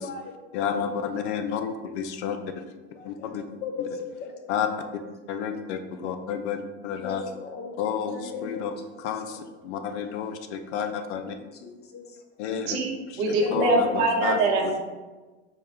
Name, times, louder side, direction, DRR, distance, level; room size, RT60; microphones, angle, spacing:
voice 1, 0.0-0.3 2.9-5.0 7.0-7.8 8.1-9.5 11.1-12.2 13.3-14.3, left 5 dB, 30° left, 5 dB, 0.6 m, -37 dB
voice 2, 0.5-2.6 3.0-3.4 4.5-4.7 5.3-7.2 7.8-11.4 12.4-12.8 13.1-14.4, left 7 dB, 75° left, 7 dB, 0.5 m, -31 dB
voice 3, 13.2-14.8, right 2 dB, 70° right, 1 dB, 0.9 m, -23 dB
4.6 x 2.2 x 3.5 m, 1.2 s
hypercardioid pair, 90°, 34 cm